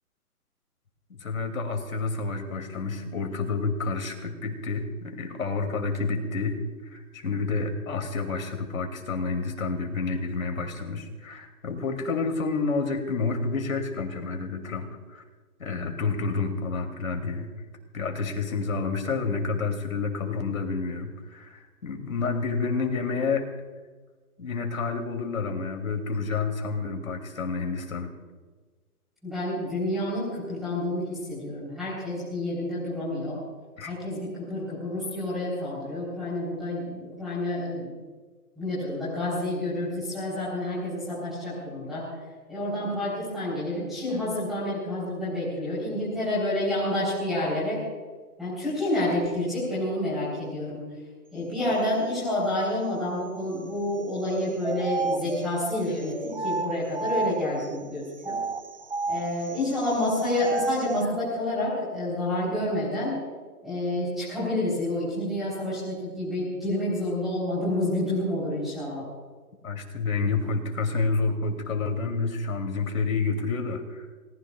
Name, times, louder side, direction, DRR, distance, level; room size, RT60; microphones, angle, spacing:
voice 1, 1.1-15.2 15.6-17.5 17.9-23.5 24.4-28.1 33.8-33.9 69.6-74.1, left 4 dB, 60° left, 4 dB, 2.9 m, -29 dB
voice 2, 29.2-33.4 33.9-37.9 38.6-42.1 42.5-47.8 48.4-50.8 51.3-58.4 59.1-63.2 63.6-69.0, left 1 dB, ahead, -10 dB, 3.9 m, -29 dB
sound 1, 54.3-57.7 58.2-61.1, right 4 dB, 40° right, 0.5 m, -32 dB
28.0 x 19.0 x 2.4 m, 1.4 s
hypercardioid pair, 175°, 46 cm